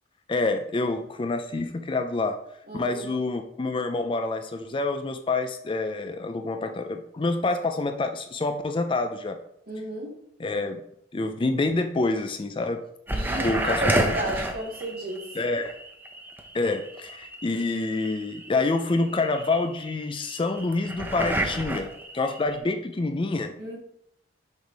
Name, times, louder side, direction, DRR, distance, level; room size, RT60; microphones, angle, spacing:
voice 1, 0.3-2.4 2.7-9.4 10.4-10.8 11.1-12.8 13.4-14.2 15.3-15.7 16.5-23.5, left 3 dB, 30° left, 6 dB, 0.4 m, -27 dB
voice 2, 2.7-3.1 9.7-10.1 13.1-15.2 23.6-23.8, right 1 dB, 55° right, -3 dB, 2.2 m, -32 dB
sound 1, 13.1-22.6, right 1 dB, 10° right, 0.6 m, -31 dB
6.5 x 3.5 x 4.6 m, 0.72 s
head